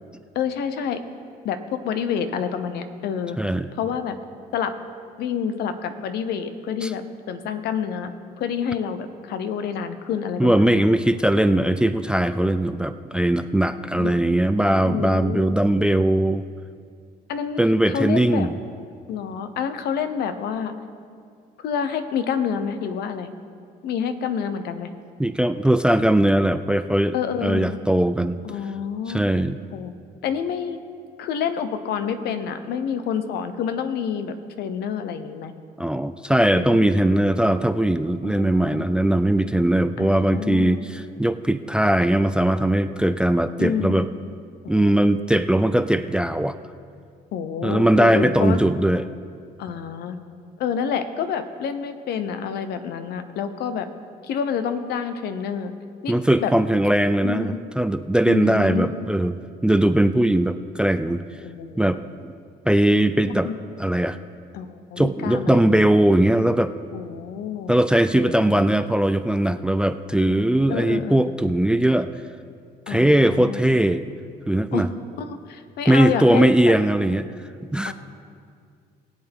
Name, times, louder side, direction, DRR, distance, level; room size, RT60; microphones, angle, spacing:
voice 1, 0.3-1.0 1.4-3.4 3.8-4.2 4.5-4.7 5.2-8.1 8.4-10.8 11.4-11.8 14.0-14.1 14.8-15.6 17.3-18.5 19.1-20.7 21.6-23.3 23.8-24.9 27.1-27.8 28.4-29.2 29.7-29.9 30.2-30.8 31.2-35.5 36.5-36.9 38.2-38.8 40.0-40.8 43.6-44.0 44.6-44.9 47.3-48.6 49.6-50.2 50.6-53.9 54.2-55.7 56.0-56.1 56.4-56.5 57.2-57.6 58.3-59.1 61.4-61.8 63.3-63.5 64.5-65.8 66.9-67.7 68.1-68.6 70.7-71.3 72.9-73.6 74.7-74.8 75.2-76.7 77.8-77.9, left 7 dB, 75° left, 10 dB, 0.9 m, -28 dB
voice 2, 3.4-3.7 6.8-6.9 10.4-16.4 17.6-18.5 25.2-27.2 27.4-28.4 29.1-29.6 35.8-44.1 44.7-46.6 47.6-49.0 56.1-59.4 59.6-61.2 61.8-62.3 62.7-63.5 63.8-64.2 65.0-66.7 67.7-72.1 72.9-74.1 74.5-74.9 75.9-77.3 77.7-77.9, right 1 dB, 5° right, 12 dB, 0.3 m, -20 dB
21.5 x 8.1 x 3.6 m, 2.2 s
cardioid pair, 110°, 17 cm